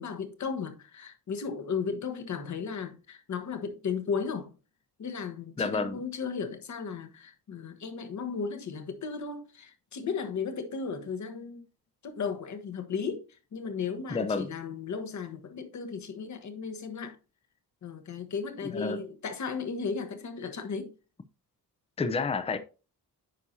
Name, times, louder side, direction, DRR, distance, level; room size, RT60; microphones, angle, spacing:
voice 1, 0.0-4.5 5.0-11.7 12.0-17.2 17.8-20.9, left 5 dB, 45° left, 1.3 m, -35 dB
voice 2, 5.6-6.0 14.1-14.5 18.7-19.0 22.0-22.6, left 4 dB, 15° left, 0.6 m, -29 dB
9.5 x 5.6 x 2.8 m
cardioid pair, 140°, 38 cm